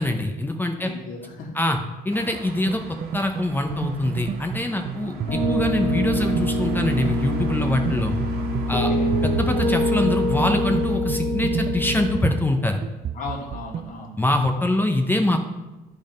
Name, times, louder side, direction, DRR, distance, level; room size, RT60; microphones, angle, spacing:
voice 1, 0.0-0.9 1.6-1.8 2.0-2.8 3.1-8.1 8.7-8.9 9.2-12.8 14.2-15.4, left 1 dB, 10° left, 4 dB, 0.6 m, -24 dB
voice 2, 0.8-1.6 4.9-5.3 8.7-9.1 13.1-14.2, left 3 dB, 55° left, 0 dB, 1.8 m, -36 dB
sound 1, 2.1-11.0, right 3 dB, 70° right, 1.4 m, -42 dB
sound 2, 2.7-13.9, right 8 dB, 40° right, 0.3 m, -33 dB
Piano, 5.3-12.2, equal, 35° left, 2.3 m, -24 dB
9.9 x 3.6 x 5.3 m, 1.1 s
cardioid pair, 110°, 17 cm